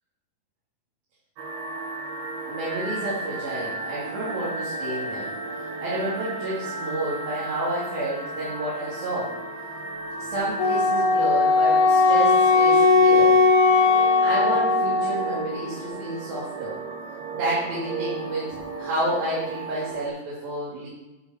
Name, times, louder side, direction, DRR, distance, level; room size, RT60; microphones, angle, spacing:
sound 1, 1.4-20.1, right 2 dB, 90° right, 3.4 m, -34 dB
voice 1, 2.5-5.3 5.8-9.3 10.2-13.4 14.2-16.8 17.3-20.9, right 1 dB, 75° right, -8 dB, 4.9 m, -30 dB
Wind instrument woodwind instrument, 10.6-15.4, left 3 dB, 55° left, 3.2 m, -18 dB
12.0 x 7.5 x 6.0 m, 1.0 s
omnidirectional pair, 4.3 m